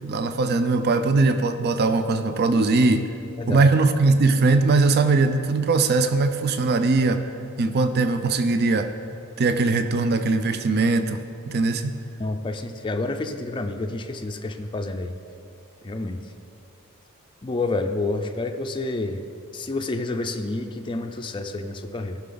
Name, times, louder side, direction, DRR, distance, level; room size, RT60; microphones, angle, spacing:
voice 1, 0.0-3.1 3.5-7.2 7.6-8.9 9.4-11.2 11.5-11.9, right 3 dB, 50° right, 8 dB, 0.5 m, -20 dB
voice 2, 3.4-3.7 12.2-15.1 15.8-16.2 17.4-19.2 19.5-22.2, left 2 dB, 20° left, 5 dB, 0.4 m, -29 dB
15.0 x 5.8 x 3.9 m, 2.6 s
head